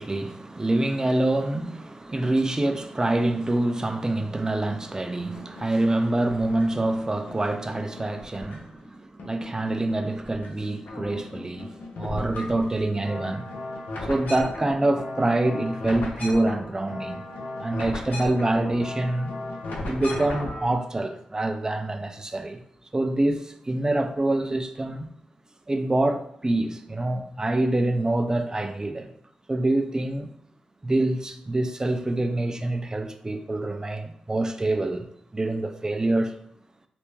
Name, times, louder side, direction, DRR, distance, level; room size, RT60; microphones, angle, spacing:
voice 1, 0.0-13.5 14.0-17.1 17.6-19.3 19.9-22.6 22.9-25.1 25.7-29.1 29.5-30.3 30.8-36.3, right 2 dB, 25° right, 0.4 m, -26 dB
sound 1, 5.3-6.8 7.3-8.9 9.2-10.5 10.8-20.7, left 2 dB, 80° left, 0.6 m, -37 dB
3.4 x 2.5 x 3.1 m
cardioid pair, 50°, 3 cm